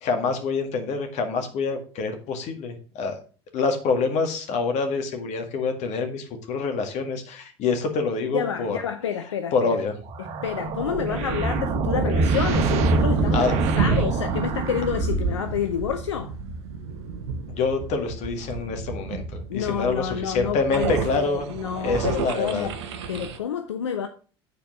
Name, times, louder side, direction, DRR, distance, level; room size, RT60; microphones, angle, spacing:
voice 1, 0.0-3.2 3.5-8.8 9.5-9.9 13.3-13.5 17.5-21.5 21.8-22.7, left 4 dB, 50° left, 1.9 m, -26 dB
voice 2, 8.3-9.8 10.2-16.3 19.5-24.1, left 8 dB, 80° left, 0.6 m, -29 dB
sound 1, 10.1-15.5, right 3 dB, 50° right, 1.3 m, -24 dB
sound 2, 12.3-23.4, right 5 dB, 70° right, 0.9 m, -31 dB
8.4 x 4.5 x 6.2 m
hypercardioid pair, 70°, 15 cm